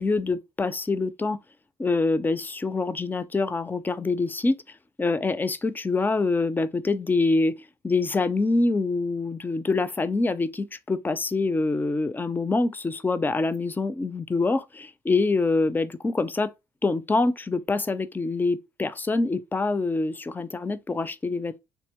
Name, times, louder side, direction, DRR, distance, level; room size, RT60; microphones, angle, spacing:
voice 1, 0.0-1.4 1.8-4.6 5.0-7.5 7.8-16.5 16.8-21.6, left 3 dB, 15° left, 0.3 m, -25 dB
3.5 x 2.8 x 2.9 m
supercardioid pair, 70°, 13 cm